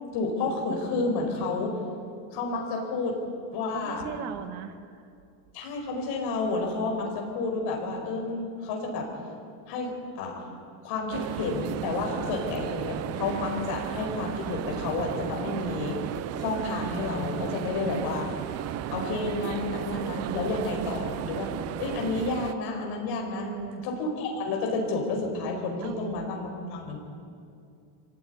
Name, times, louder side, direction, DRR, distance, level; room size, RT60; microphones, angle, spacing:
voice 1, 0.1-1.8 2.3-3.2 3.5-4.1 5.5-9.1 9.7-10.5 10.8-16.0 16.4-18.3 18.9-21.5 21.8-23.5 23.8-27.0, left 3 dB, 50° left, 1 dB, 5.4 m, -30 dB
voice 2, 3.7-5.0 23.4-23.8 25.8-26.2, right 7 dB, 70° right, 6 dB, 2.0 m, -37 dB
sound 1, 11.1-22.5, right 12 dB, 30° right, 0.5 m, -34 dB
24.5 x 15.5 x 9.7 m, 2.4 s
cardioid pair, 165°, 50 cm